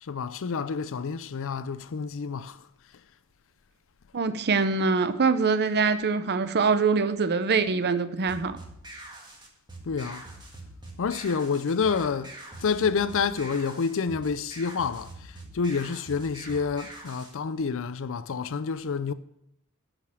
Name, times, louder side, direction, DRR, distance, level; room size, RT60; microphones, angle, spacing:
voice 1, 0.0-2.7 9.8-10.3 11.0-19.1, left 5 dB, 60° left, 0.5 m, -28 dB
voice 2, 4.1-8.6, right 4 dB, 50° right, 0.6 m, -24 dB
sound 1, 8.3-17.3, right 1 dB, 20° right, 1.7 m, -44 dB
10.5 x 5.2 x 7.0 m
head